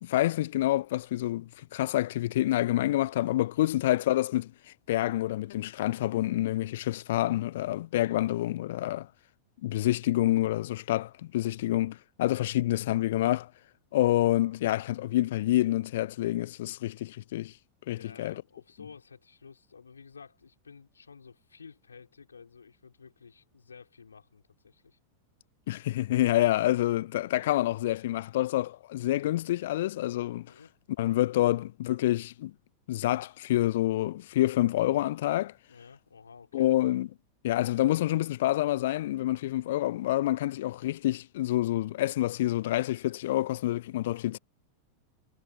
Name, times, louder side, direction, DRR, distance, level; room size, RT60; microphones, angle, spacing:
voice 1, 0.0-4.5 4.9-9.1 9.6-13.5 13.9-17.5 17.9-18.3 25.7-30.5 31.0-32.5 32.9-35.5 36.5-37.1 37.4-44.4, left 15 dB, 55° left, 0.3 m, -27 dB
voice 2, 17.9-25.0 30.5-30.7 35.7-36.7, left 5 dB, 75° left, 4.7 m, -52 dB
figure-of-eight pair, 90°, 0 cm